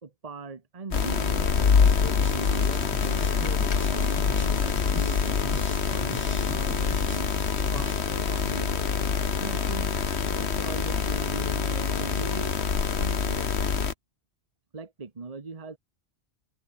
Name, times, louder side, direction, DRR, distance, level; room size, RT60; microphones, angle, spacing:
voice 1, 0.0-7.3 7.7-8.9 9.4-9.9 10.3-12.6 12.9-13.5 13.8-13.9 14.7-15.8, right 4 dB, 35° right, 1.3 m, -40 dB
sound 1, 0.9-13.9, left 6 dB, 75° left, 1.7 m, -25 dB
sound 2, 1.8-8.0, equal, 10° left, 4.2 m, -42 dB
open air
omnidirectional pair, 1.1 m